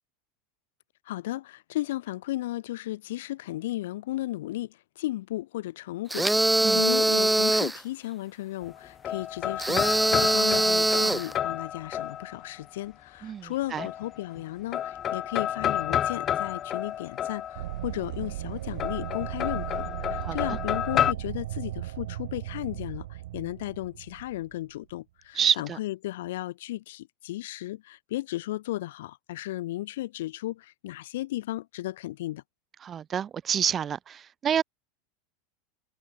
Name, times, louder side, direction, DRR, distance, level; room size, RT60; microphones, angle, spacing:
voice 1, 1.1-32.4, left 16 dB, 75° left, 5.3 m, -35 dB
sound 1, 6.1-7.8 9.6-11.3, right 1 dB, 5° right, 1.3 m, -23 dB
sound 2, 8.6-12.6 13.8-14.4 14.7-17.9 18.8-21.1, left 10 dB, 25° left, 4.2 m, -30 dB
voice 2, 13.2-13.9 20.2-20.6 25.3-25.8 32.8-34.6, right 8 dB, 20° right, 1.4 m, -28 dB
sound 3, 17.5-24.8, right 15 dB, 80° right, 2.0 m, -36 dB
supercardioid pair, 175°, 0 cm